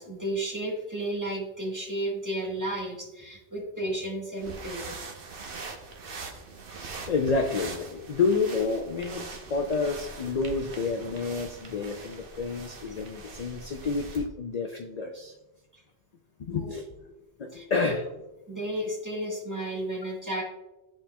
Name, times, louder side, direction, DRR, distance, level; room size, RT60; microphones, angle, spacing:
voice 1, 0.0-5.0 15.7-15.8 16.5-16.8 17.5-17.9 18.5-20.4, right 1 dB, 15° right, -2 dB, 1.4 m, -33 dB
sound 1, 4.4-14.3, right 3 dB, 55° right, 1.0 m, -42 dB
voice 2, 7.1-9.2 9.5-15.3 16.4-16.9 17.4-18.0, left 4 dB, 50° left, 5 dB, 0.5 m, -29 dB
12.5 x 4.2 x 2.2 m, 1.0 s
omnidirectional pair, 1.1 m